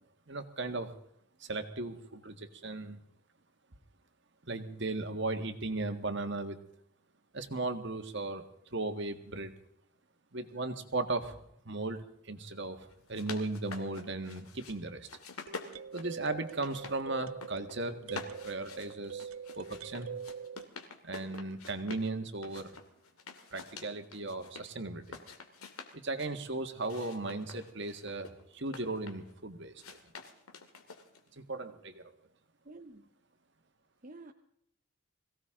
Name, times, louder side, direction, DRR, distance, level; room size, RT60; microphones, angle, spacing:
voice 1, 0.3-0.9 1.4-3.0 4.5-6.6 7.3-8.4 8.7-9.5 10.3-11.4 11.6-15.1 15.9-19.3 19.5-20.1 21.0-22.8 23.5-25.2 25.9-30.0 31.4-32.1, right 2 dB, 55° right, 1.7 m, -37 dB
sound 1, 12.7-12.8 15.5-20.7, right 6 dB, 75° right, 0.6 m, -44 dB
sound 2, 12.9-14.8 15.1-17.0 17.3-17.8 18.1-22.1 22.4-24.7 25.0-26.3 26.8-29.3 29.8-31.3, left 4 dB, 90° left, 2.4 m, -47 dB
voice 2, 32.6-33.1 34.0-34.3, right 2 dB, 35° right, 0.9 m, -49 dB
22.0 x 17.0 x 3.8 m
head